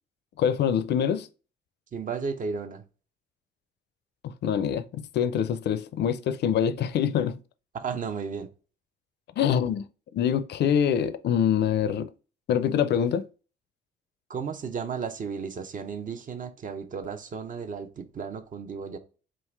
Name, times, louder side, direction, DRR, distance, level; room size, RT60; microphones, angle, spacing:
voice 1, 0.4-1.3 4.2-7.4 9.4-9.9 10.1-12.1 12.5-13.3, left 8 dB, 60° left, 0.4 m, -25 dB
voice 2, 1.9-2.8 7.7-8.5 14.3-19.0, right 5 dB, 40° right, 0.7 m, -34 dB
3.8 x 2.5 x 4.4 m
cardioid pair, 90°, 20 cm